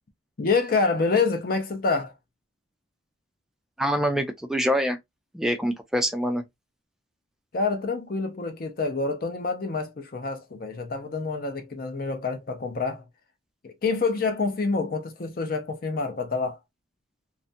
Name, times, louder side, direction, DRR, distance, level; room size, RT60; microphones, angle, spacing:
voice 1, 0.4-2.1 7.5-13.0 13.6-16.6, left 4 dB, 45° left, 0.5 m, -27 dB
voice 2, 3.8-5.0 5.3-6.4, equal, ahead, 0.4 m, -25 dB
2.4 x 2.2 x 2.5 m
head